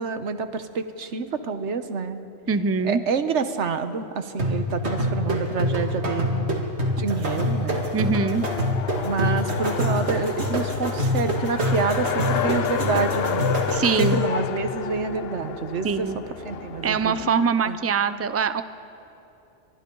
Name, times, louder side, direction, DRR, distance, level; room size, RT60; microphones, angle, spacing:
voice 1, 0.0-2.2 2.8-6.6 7.0-7.8 9.0-13.5 14.0-16.1 16.4-17.8, right 5 dB, 90° right, 9 dB, 1.3 m, -28 dB
voice 2, 2.5-3.0 7.9-8.5 13.7-14.2 15.8-16.2 16.8-18.6, right 5 dB, 20° right, 12 dB, 0.4 m, -23 dB
sound 1, 4.4-14.3, left 1 dB, 70° right, 2.4 m, -26 dB
Race car auto racing, 7.3-17.3, left 9 dB, 65° left, 0.8 m, -31 dB
30.0 x 24.5 x 3.9 m, 2.9 s
omnidirectional pair, 1.2 m